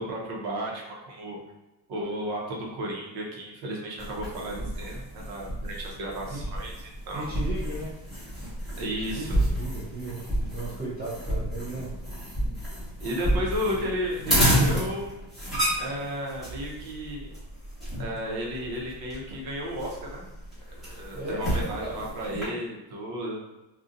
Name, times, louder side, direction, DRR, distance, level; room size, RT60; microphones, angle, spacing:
voice 1, 0.0-1.4 1.9-6.7 7.1-7.3 8.7-9.4 13.0-15.1 15.8-17.3 18.0-20.3 20.8-23.4, equal, 55° right, -2 dB, 0.8 m, -33 dB
sound 1, 4.0-22.4, equal, ahead, 1.2 m, -30 dB
voice 2, 7.1-7.9 9.0-10.2 10.5-11.9 21.1-22.1, right 2 dB, 20° right, -7 dB, 0.4 m, -36 dB
3.8 x 2.3 x 2.6 m, 1.0 s
cardioid pair, 175°, 46 cm